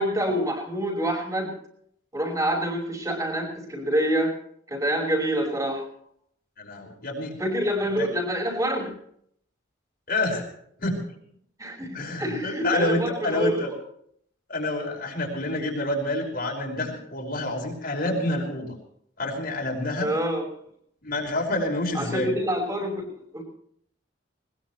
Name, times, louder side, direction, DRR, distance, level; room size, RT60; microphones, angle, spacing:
voice 1, 0.0-1.5 2.1-4.3 4.7-5.8 7.4-8.9 11.6-11.9 12.2-13.7 20.0-20.4 21.9-23.1 23.3-23.4, right 1 dB, 20° right, 1 dB, 5.6 m, -26 dB
voice 2, 6.6-7.4 8.0-8.1 10.1-10.5 10.8-11.1 11.9-13.7 14.5-18.8 19.2-20.1 21.0-22.3, left 2 dB, 50° left, 0 dB, 5.4 m, -28 dB
21.0 x 21.0 x 3.3 m, 0.66 s
head